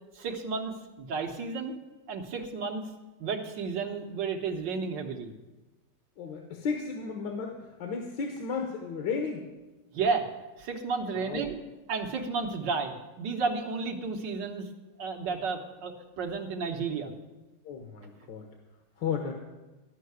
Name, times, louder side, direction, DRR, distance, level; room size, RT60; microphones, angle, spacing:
voice 1, 0.2-1.8 2.1-2.8 3.2-5.3 9.9-10.3 10.6-11.6 11.9-14.7 15.0-17.1, right 4 dB, 80° right, 3 dB, 1.8 m, -32 dB
voice 2, 6.2-9.5 11.2-11.7 17.6-18.5 19.0-19.3, left 5 dB, 80° left, 3 dB, 1.7 m, -34 dB
13.0 x 5.7 x 9.5 m, 1.1 s
omnidirectional pair, 1.9 m